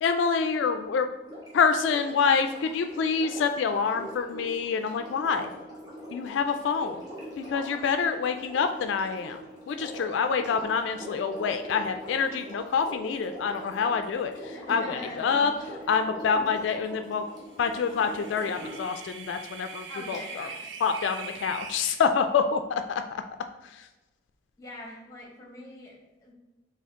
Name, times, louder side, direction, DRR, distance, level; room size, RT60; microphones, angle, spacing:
voice 1, 0.0-1.1 1.5-5.5 6.1-7.0 7.4-9.4 9.7-15.5 15.9-17.2 17.6-20.5 20.8-23.2 23.6-23.9, left 5 dB, 75° left, 7 dB, 0.3 m, -27 dB
Sink (filling or washing), 1.2-19.0 20.1-20.2, equal, 20° right, 1.3 m, -42 dB
voice 2, 14.5-15.9 16.3-16.4 19.9-20.7 24.6-26.3, left 2 dB, 15° left, -1 dB, 1.0 m, -42 dB
sound 1, 17.7-22.0, right 5 dB, 75° right, 0.5 m, -42 dB
4.3 x 3.4 x 3.6 m, 1.1 s
head